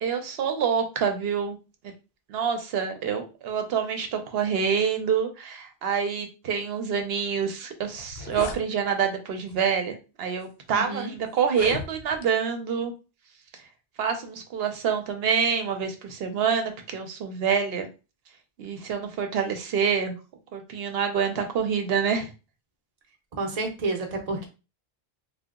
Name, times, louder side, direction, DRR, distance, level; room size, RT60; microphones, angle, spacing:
voice 1, 0.0-1.6 2.3-12.9 14.0-17.9 18.6-20.1 20.5-22.3, right 6 dB, 75° right, 6 dB, 0.9 m, -27 dB
sound 1, 7.5-7.6 7.9-8.6 9.5-9.7 10.4-10.5 11.4-12.3, left 5 dB, 75° left, 0.8 m, -36 dB
voice 2, 10.7-11.1 23.4-24.5, right 2 dB, 40° right, 2 dB, 0.8 m, -30 dB
2.7 x 2.2 x 3.6 m, 0.31 s
omnidirectional pair, 1.0 m